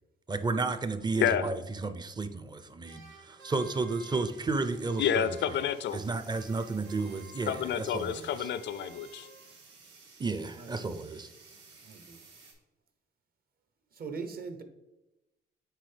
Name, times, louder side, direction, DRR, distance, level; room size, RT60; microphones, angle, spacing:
voice 1, 0.3-5.3 5.9-8.5 10.2-11.3, right 3 dB, 20° right, 10 dB, 0.5 m, -32 dB
voice 2, 1.1-1.5 5.0-6.0 7.5-9.3, left 9 dB, 65° left, 14 dB, 0.4 m, -29 dB
sound 1, 2.8-6.1 6.3-9.7, right 4 dB, 90° right, 1.0 m, -54 dB
sound 2, 4.3-12.5, right 4 dB, 65° right, 2.1 m, -56 dB
voice 3, 10.6-10.9 11.8-12.2 13.9-14.6, right 5 dB, 50° right, 8 dB, 0.8 m, -41 dB
9.1 x 3.5 x 3.3 m, 0.97 s
cardioid pair, 105°, 20 cm